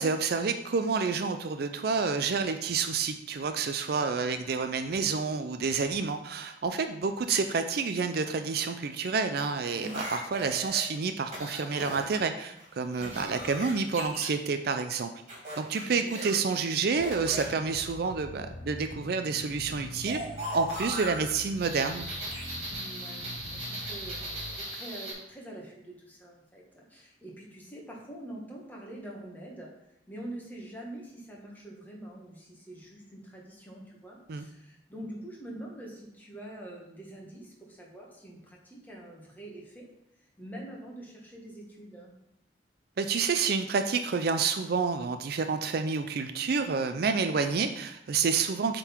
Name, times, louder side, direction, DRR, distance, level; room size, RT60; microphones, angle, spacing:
voice 1, 0.0-15.1 15.6-20.2 20.5-22.0 34.3-34.5 43.0-48.8, right 5 dB, 60° right, 8 dB, 0.4 m, -29 dB
sound 1, 9.4-10.8 11.3-12.2 12.6-14.3 15.3-17.4 20.1-25.1, right 1 dB, 40° right, 2.5 m, -38 dB
voice 2, 13.0-13.3 15.8-16.1 22.7-29.7 30.1-39.9 40.4-42.1, right 1 dB, 10° left, -3 dB, 1.6 m, -45 dB
sound 2, 17.0-24.6, left 2 dB, 60° left, 0.6 m, -45 dB
8.0 x 3.9 x 4.5 m, 0.84 s
head